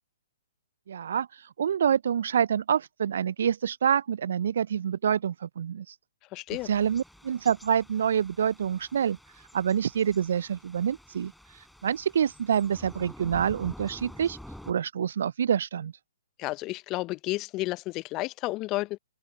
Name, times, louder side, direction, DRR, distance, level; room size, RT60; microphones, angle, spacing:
voice 1, 0.9-5.9 6.6-9.2 9.5-11.3 11.8-14.4 14.7-15.9, right 8 dB, 60° right, 0.5 m, -27 dB
voice 2, 6.3-6.7 16.4-19.0, left 20 dB, 30° left, 0.6 m, -31 dB
Thunder / Rain, 6.5-14.7, left 1 dB, ahead, 4.6 m, -48 dB
open air
figure-of-eight pair, 125°, 0 cm